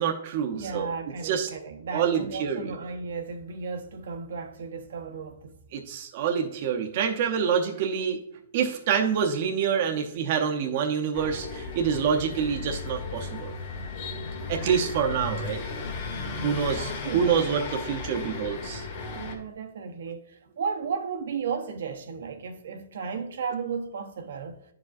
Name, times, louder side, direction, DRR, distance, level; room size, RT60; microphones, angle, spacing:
voice 1, 0.0-0.9 1.2-1.5 1.9-2.7 5.7-8.2 8.5-13.5 14.5-15.6 16.4-18.9, right 7 dB, 45° right, 0.7 m, -26 dB
voice 2, 0.5-5.6 14.6-14.8 16.1-17.4 19.1-24.6, right 5 dB, 75° right, 0.8 m, -34 dB
sound 1, 11.1-19.4, left 4 dB, 50° left, 1.6 m, -35 dB
10.5 x 4.8 x 2.5 m
hypercardioid pair, 150°, 0 cm